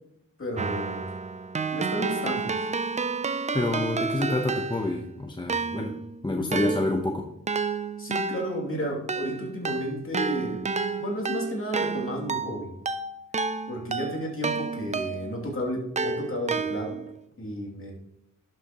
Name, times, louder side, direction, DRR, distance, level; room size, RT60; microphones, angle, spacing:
voice 1, 0.4-1.1 1.7-2.5 4.2-4.5 6.3-6.6 8.0-10.6 11.0-12.7 13.7-17.0 17.4-17.9, equal, 40° left, -1 dB, 2.5 m, -32 dB
Keyboard (musical), 0.6-5.1 5.5-15.4 16.0-17.2, right 4 dB, 20° right, 0.3 m, -31 dB
voice 2, 3.5-5.9 6.2-7.3, left 2 dB, 15° left, 3 dB, 0.7 m, -27 dB
11.0 x 6.6 x 2.9 m, 0.77 s
wide cardioid pair, 95°, 34 cm